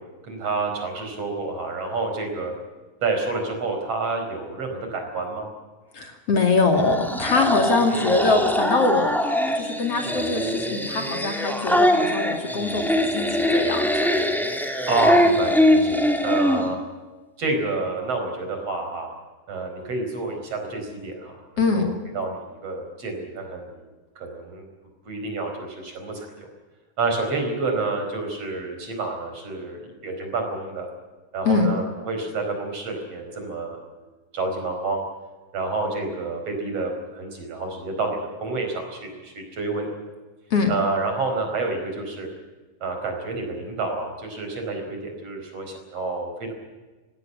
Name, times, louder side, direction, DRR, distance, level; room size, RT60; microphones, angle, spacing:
voice 1, 0.0-2.5 3.0-5.5 7.9-8.1 14.9-16.8 17.4-19.1 19.5-23.8 24.2-24.7 25.1-26.5 27.0-30.9 31.3-33.8 34.3-35.0 35.5-39.9 40.7-42.3 42.8-46.5, right 3 dB, 50° right, 4 dB, 5.6 m, -29 dB
voice 2, 5.9-9.1 9.5-12.8 13.1-14.1 21.6-21.8 31.4-31.7 40.5-40.7, left 3 dB, 50° left, 4 dB, 3.3 m, -23 dB
sound 1, 6.7-16.7, equal, ahead, 2.0 m, -22 dB
19.5 x 17.0 x 9.7 m, 1.2 s
omnidirectional pair, 3.7 m